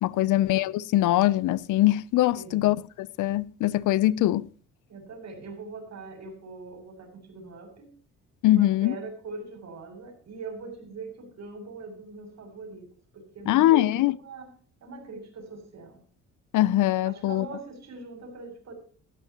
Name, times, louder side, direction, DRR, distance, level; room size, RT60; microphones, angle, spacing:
voice 1, 0.0-4.5 8.4-9.0 13.5-14.1 16.5-17.5, left 15 dB, 85° left, 0.7 m, -22 dB
voice 2, 2.3-2.7 4.9-7.9 8.5-12.9 13.1-14.5 14.8-16.0 17.0-18.7, right 3 dB, 60° right, 6.8 m, -42 dB
18.0 x 12.5 x 3.0 m
cardioid pair, 90°, 30 cm